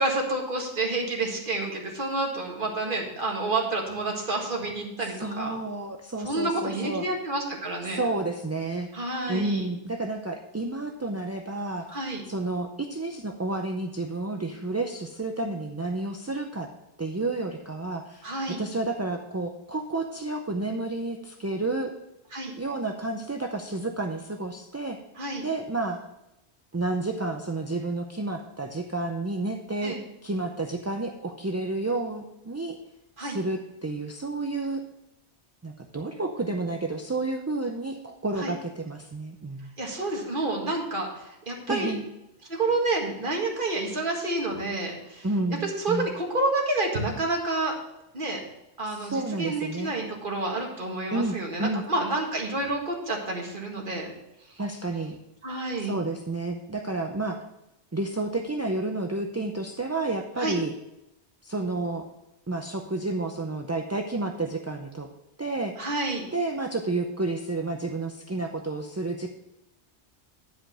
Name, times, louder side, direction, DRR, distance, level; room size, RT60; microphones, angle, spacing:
voice 1, 0.0-5.6 6.2-8.0 8.9-9.7 11.9-12.2 18.2-18.6 22.3-22.5 25.2-25.4 29.8-30.0 33.2-33.4 38.4-38.5 39.8-41.9 42.5-45.3 45.6-47.7 48.1-48.4 48.8-54.1 55.4-55.9 60.4-60.6 65.8-66.2, right 2 dB, 50° right, 0 dB, 1.9 m, -29 dB
voice 2, 5.2-7.1 7.9-8.9 9.3-12.0 12.3-16.7 17.0-21.9 22.6-25.0 25.4-26.1 26.7-30.0 30.2-32.8 33.2-34.8 35.6-39.7 41.7-42.0 45.2-46.1 48.8-49.9 51.1-51.8 54.6-55.2 55.8-57.4 57.9-60.7 61.4-62.0 62.5-65.1 65.4-65.8 66.3-69.3, right 2 dB, 25° right, 2 dB, 0.4 m, -30 dB
10.5 x 5.1 x 6.2 m, 0.90 s
omnidirectional pair, 1.2 m